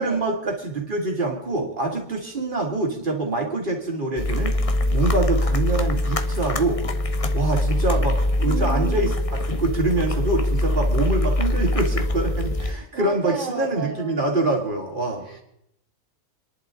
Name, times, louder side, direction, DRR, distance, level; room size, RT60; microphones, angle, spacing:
voice 1, 0.0-4.6 4.9-6.9 7.3-15.2, right 2 dB, 30° right, 1 dB, 2.9 m, -25 dB
sound 1, 4.2-12.7, left 1 dB, 30° left, 0.7 m, -23 dB
voice 2, 8.4-9.1 12.6-14.2 15.2-15.4, right 5 dB, 50° right, 2 dB, 1.6 m, -33 dB
28.5 x 11.0 x 3.9 m, 0.79 s
omnidirectional pair, 1.7 m